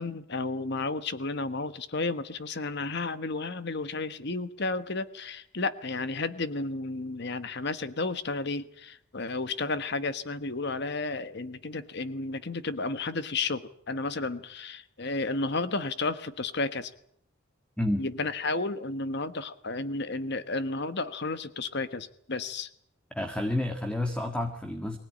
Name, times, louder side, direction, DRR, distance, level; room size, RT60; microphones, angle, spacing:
voice 1, 0.0-16.9 18.0-22.7, left 3 dB, 60° left, 13 dB, 1.3 m, -32 dB
voice 2, 23.1-25.0, left 1 dB, 5° left, 6 dB, 1.8 m, -30 dB
24.0 x 17.0 x 9.9 m, 0.71 s
head